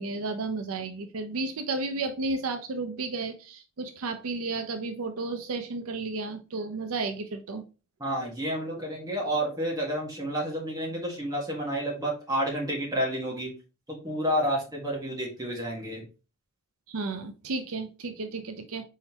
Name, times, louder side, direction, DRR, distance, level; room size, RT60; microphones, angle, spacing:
voice 1, 0.0-7.6 16.9-18.8, right 3 dB, 75° right, 7 dB, 0.5 m, -33 dB
voice 2, 8.0-13.5 13.9-16.1, equal, 15° right, -2 dB, 1.5 m, -30 dB
4.3 x 3.8 x 2.9 m, 0.32 s
head